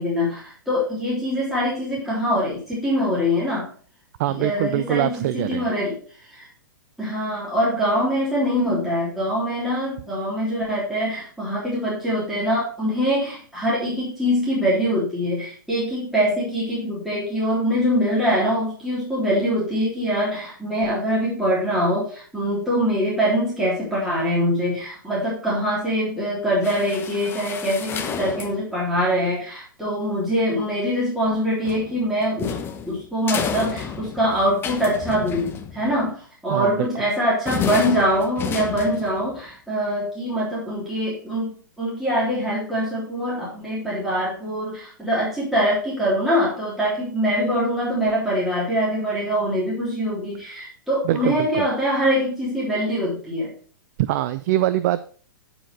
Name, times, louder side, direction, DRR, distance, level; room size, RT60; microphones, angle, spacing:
voice 1, 0.0-3.7 4.3-6.5 7.0-32.6 32.9-53.5, equal, ahead, -8 dB, 3.4 m, -23 dB
voice 2, 4.2-5.7 36.5-36.9 51.0-51.7 54.0-55.0, right 14 dB, 45° right, 13 dB, 0.4 m, -23 dB
sound 1, 26.6-28.7 31.6-36.1 37.4-39.4, left 7 dB, 20° left, 0.9 m, -31 dB
9.9 x 4.9 x 4.6 m, 0.43 s
hypercardioid pair, 120°, 11 cm